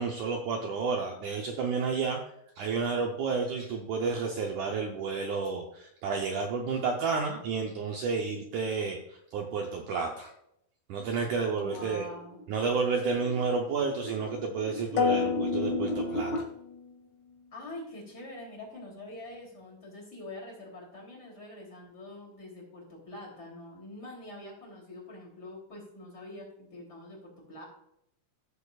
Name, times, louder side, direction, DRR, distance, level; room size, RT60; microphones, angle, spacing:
voice 1, 0.0-2.2 2.6-10.3 10.9-12.1 12.5-16.5, right 5 dB, 75° right, 1 dB, 1.9 m, -31 dB
voice 2, 11.5-12.4 17.5-27.7, left 1 dB, 25° left, -2 dB, 3.3 m, -45 dB
sound 1, 11.7-16.4, equal, 90° left, 0.9 m, -36 dB
sound 2, 15.0-16.9, left 6 dB, 70° left, 2.4 m, -30 dB
15.0 x 6.9 x 2.4 m, 0.76 s
omnidirectional pair, 4.4 m